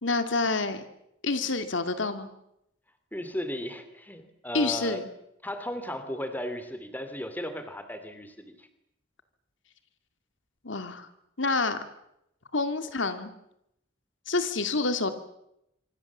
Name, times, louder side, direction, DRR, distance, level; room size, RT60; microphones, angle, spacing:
voice 1, 0.0-0.8 1.2-2.3 4.5-5.0 10.6-11.1 11.4-11.8 12.5-13.3 14.3-15.1, left 3 dB, 75° left, 9 dB, 2.3 m, -27 dB
voice 2, 3.1-5.0 5.4-8.7, left 1 dB, 10° left, 10 dB, 2.7 m, -35 dB
26.0 x 25.5 x 7.4 m, 0.81 s
head